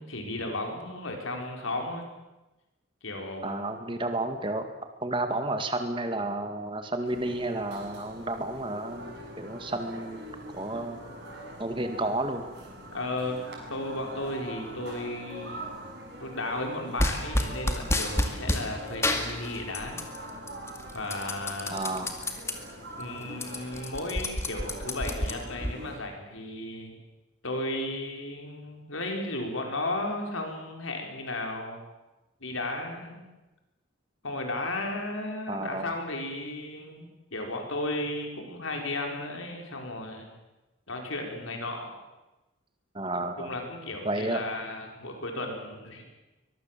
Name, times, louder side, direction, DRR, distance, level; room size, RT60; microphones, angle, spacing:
voice 1, 0.0-2.1 3.0-3.6 12.9-13.4 13.7-15.6 16.2-20.0 20.9-21.8 23.0-26.9 27.4-31.8 32.4-33.2 34.2-40.3 40.9-41.9 43.4-46.0, left 2 dB, 80° left, 2 dB, 5.1 m, -34 dB
voice 2, 3.4-4.7 5.0-10.2 10.5-11.0 11.6-12.4 21.7-22.1 35.5-35.9 42.9-43.5 44.0-44.4, right 2 dB, 25° right, 6 dB, 2.2 m, -31 dB
sound 1, 7.0-26.0, right 1 dB, 55° right, 6.7 m, -43 dB
sound 2, 17.0-18.7 19.0-20.2 20.5-22.6 23.0-23.1 23.3-25.7, left 1 dB, 15° left, 2.1 m, -29 dB
23.5 x 21.0 x 7.6 m, 1.1 s
head